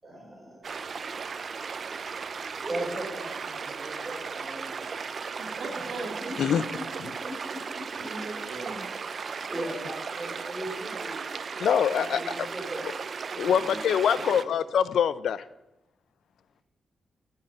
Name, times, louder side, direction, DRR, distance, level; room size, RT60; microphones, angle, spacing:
voice 1, 0.0-0.6 2.6-4.9 5.2-5.3 6.2-6.3 7.2-7.8 9.5-11.2 11.9-12.8 13.3-13.7 14.0-14.4, right 1 dB, 15° right, -4 dB, 4.5 m, -38 dB
sound 1, 0.6-14.4, right 5 dB, 45° right, 0.4 m, -36 dB
voice 2, 5.4-6.2 8.0-8.9 9.1-9.3 13.6-13.8, right 2 dB, 70° right, 0 dB, 2.0 m, -39 dB
voice 3, 11.6-12.5 13.4-15.4, left 8 dB, 80° left, 16 dB, 0.4 m, -24 dB
14.0 x 5.6 x 5.7 m, 0.98 s
wide cardioid pair, 135°, 0 cm